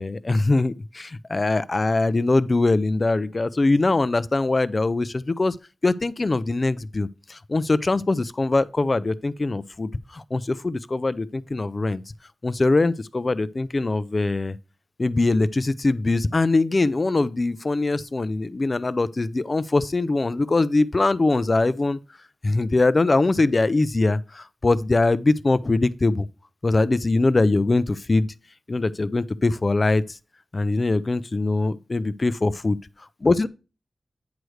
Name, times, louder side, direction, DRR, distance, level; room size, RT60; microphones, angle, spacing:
voice 1, 0.0-5.6 5.8-12.0 12.4-14.6 15.0-22.0 22.4-26.3 26.6-28.3 28.7-30.2 30.5-32.8 33.2-33.5, left 2 dB, 35° left, 0.4 m, -22 dB
9.2 x 3.2 x 6.3 m
wide cardioid pair, 100°, 0 cm